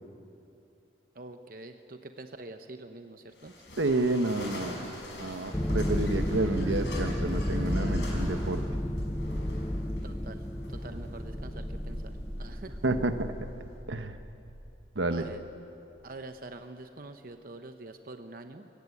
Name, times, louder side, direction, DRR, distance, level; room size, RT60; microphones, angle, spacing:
voice 1, 1.1-3.5 10.0-12.8 15.1-15.4 16.0-18.7, right 2 dB, 50° right, 7 dB, 0.8 m, -45 dB
sound 1, 3.3-13.8, left 1 dB, 75° left, 5.3 m, -45 dB
voice 2, 3.8-4.9 5.2-8.6 12.8-13.1 13.9-14.2 14.9-15.3, right 2 dB, 80° right, 8 dB, 1.1 m, -29 dB
sound 2, 5.5-13.3, left 1 dB, 15° left, 0.6 m, -32 dB
sound 3, 11.2-15.8, equal, 25° right, 1.7 m, -43 dB
23.5 x 16.0 x 8.6 m, 2.7 s
head